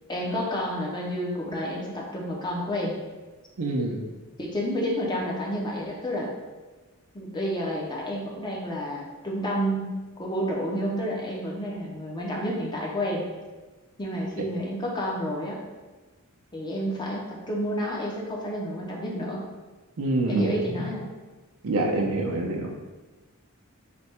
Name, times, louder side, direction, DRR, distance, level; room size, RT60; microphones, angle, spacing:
voice 1, 0.1-2.9 4.4-6.3 7.1-13.2 14.0-15.6 16.5-19.4 20.2-21.0, equal, 20° left, -2 dB, 0.6 m, -30 dB
voice 2, 3.6-4.0 20.0-20.9 21.6-22.7, right 2 dB, 65° right, 1 dB, 0.6 m, -26 dB
3.3 x 2.2 x 4.2 m, 1.2 s
head